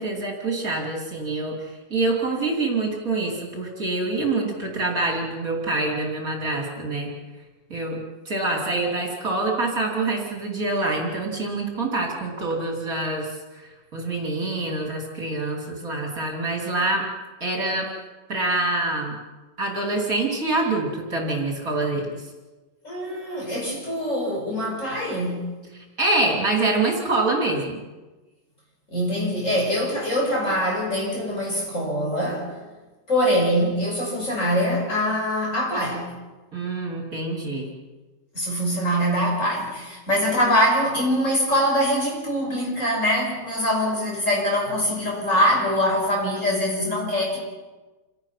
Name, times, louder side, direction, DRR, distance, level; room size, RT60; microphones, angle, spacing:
voice 1, 0.0-7.1 7.7-17.1 17.4-17.9 18.3-19.2 19.6-22.3 25.7-27.8 36.5-37.7, right 2 dB, 45° right, 0 dB, 3.7 m, -26 dB
voice 2, 22.8-25.5 28.9-32.5 33.1-36.1 38.3-47.4, equal, 40° left, -2 dB, 6.6 m, -23 dB
28.0 x 17.5 x 5.9 m, 1.2 s
omnidirectional pair, 2.1 m